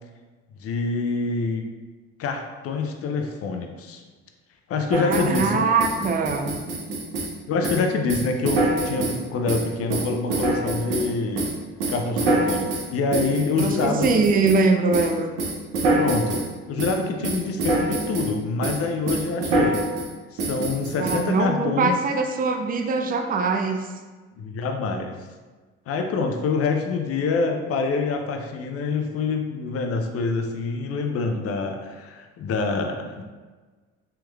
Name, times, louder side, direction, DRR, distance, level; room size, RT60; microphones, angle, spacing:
voice 1, 0.6-1.7 2.2-4.0 4.7-5.7 7.5-11.5 11.9-14.3 16.0-16.4 16.7-19.8 20.3-22.0 24.4-25.2 25.9-33.2, left 4 dB, 50° left, 4 dB, 0.5 m, -26 dB
sound 1, 4.9-5.5 5.8-7.3 7.6-9.2 9.5-11.1 11.4-14.6 14.9-15.1 15.4-16.5 16.8-17.0 17.2-18.3 18.6-18.8 19.1-20.1 20.4-21.2, right 2 dB, 75° right, 0.8 m, -25 dB
voice 2, 5.1-6.6 13.6-15.3 21.0-23.9, right 4 dB, 30° right, 5 dB, 0.4 m, -22 dB
3.4 x 3.0 x 2.3 m, 1.3 s
hypercardioid pair, 65°, 31 cm